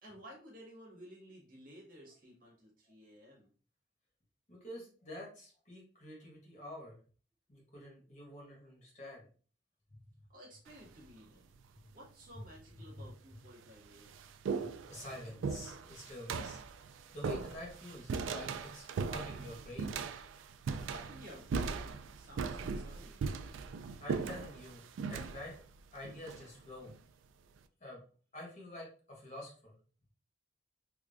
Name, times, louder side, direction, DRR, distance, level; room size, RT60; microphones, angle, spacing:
voice 1, 0.0-3.5 10.3-11.5 11.9-14.2 20.7-23.3, equal, 45° right, -3 dB, 1.4 m, -54 dB
voice 2, 4.5-7.0 7.5-9.3 14.5-19.9 24.0-25.5 25.9-26.9 27.8-28.0 28.3-29.7, left 1 dB, 40° left, -2 dB, 1.2 m, -48 dB
sound 1, 10.7-11.1 12.0-12.1 13.0-13.1 13.5-27.0, right 5 dB, 90° right, 0.3 m, -39 dB
3.6 x 3.2 x 2.5 m, 0.40 s
head